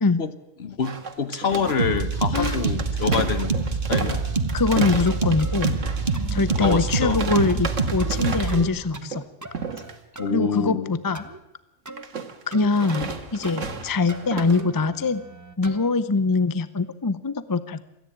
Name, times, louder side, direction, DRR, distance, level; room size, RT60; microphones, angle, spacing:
voice 1, 0.6-3.6 3.9-4.2 6.6-7.2 10.2-10.9, left 6 dB, 55° left, 12 dB, 1.3 m, -26 dB
sound 1, 0.8-8.7 8.9-9.2 9.5-9.9 12.0-14.6, right 4 dB, 75° right, 1.9 m, -33 dB
sound 2, 1.7-2.0 2.5-2.7 3.0-3.7 4.1-4.4 5.1-5.6 6.1-6.5 6.9-7.2 7.5-8.2 8.5-9.1 9.4-10.3 11.1-11.4 11.8-12.0 12.5-13.2 13.4-13.8 14.1-15.9, right 2 dB, 15° right, 1.0 m, -39 dB
sound 3, 1.8-8.6, right 4 dB, 45° right, 1.7 m, -25 dB
voice 2, 4.5-5.8 6.3-9.2 10.3-11.2 12.5-15.2 15.6-17.8, left 3 dB, 25° left, 15 dB, 0.5 m, -23 dB
27.0 x 10.5 x 10.0 m, 0.93 s
omnidirectional pair, 1.3 m